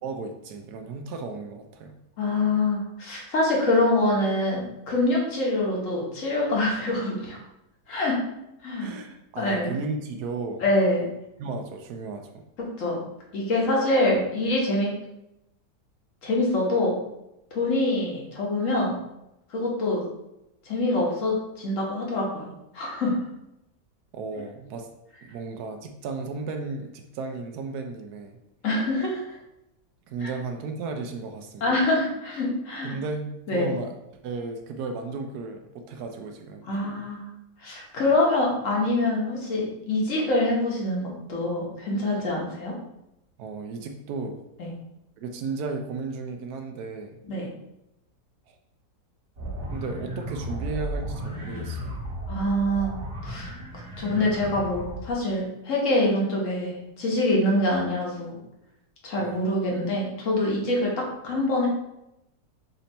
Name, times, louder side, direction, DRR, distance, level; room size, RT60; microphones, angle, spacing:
voice 1, 0.0-1.9 8.8-10.7 11.4-12.3 24.1-24.9 25.2-28.4 30.1-31.7 32.8-33.9 34.2-36.7 43.4-44.4 45.2-47.2 48.5-48.6 49.7-52.0 59.2-59.4, right 4 dB, 70° right, 5 dB, 1.0 m, -34 dB
voice 2, 2.2-7.4 7.9-8.2 8.6-8.9 9.4-9.7 10.6-11.1 12.6-13.0 13.3-14.9 16.2-17.0 17.5-18.9 19.5-20.0 20.7-23.2 28.6-29.2 31.6-33.0 33.5-33.7 36.7-37.2 37.6-42.7 44.6-44.7 47.3-47.5 52.3-53.0 53.2-53.5 54.0-58.4 59.0-61.7, left 1 dB, 50° left, -2 dB, 1.4 m, -25 dB
sound 1, 49.4-55.1, right 1 dB, 55° right, 1.4 m, -34 dB
4.3 x 2.8 x 4.0 m, 0.87 s
omnidirectional pair, 1.8 m